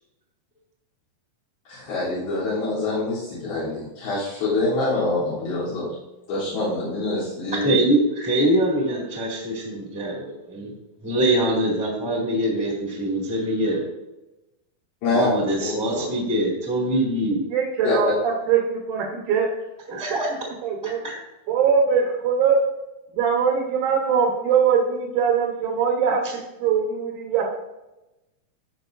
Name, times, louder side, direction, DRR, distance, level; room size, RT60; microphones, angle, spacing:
voice 1, 1.7-5.9 6.3-7.8 15.0-15.3 15.6-16.1 17.8-18.0, left 2 dB, 85° left, -11 dB, 5.3 m, -25 dB
voice 2, 7.6-10.7 11.0-13.8 15.1-17.4 19.9-20.3 20.8-21.1, right 1 dB, 5° right, -3 dB, 1.2 m, -23 dB
voice 3, 17.5-19.5 19.9-20.2 20.6-21.0 21.5-22.6 23.1-27.5, right 6 dB, 65° right, -1 dB, 2.4 m, -22 dB
16.0 x 5.4 x 2.6 m, 0.98 s
omnidirectional pair, 4.4 m